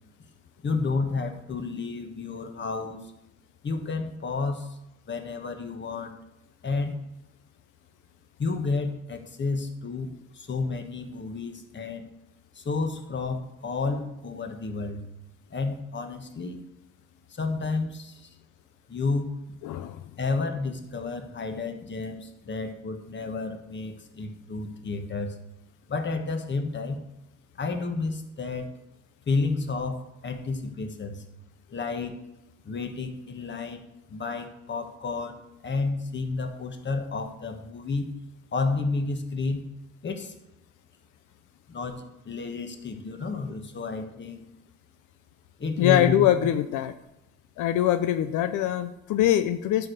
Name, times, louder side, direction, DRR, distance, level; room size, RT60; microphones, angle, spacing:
voice 1, 0.6-3.0 3.6-4.8 5.1-6.2 6.6-7.0 8.4-12.1 12.5-15.0 15.5-16.6 17.3-18.3 18.9-19.3 20.2-25.4 25.9-27.0 27.5-28.7 29.3-31.2 31.7-32.2 32.6-38.1 38.5-39.6 40.0-40.3 41.7-44.5 45.6-46.5, left 3 dB, 40° left, 6 dB, 1.4 m, -31 dB
voice 2, 19.6-20.1 45.8-46.9 47.6-49.9, left 12 dB, 90° left, 10 dB, 0.5 m, -23 dB
10.5 x 4.7 x 6.5 m, 0.89 s
cardioid pair, 90°, 30 cm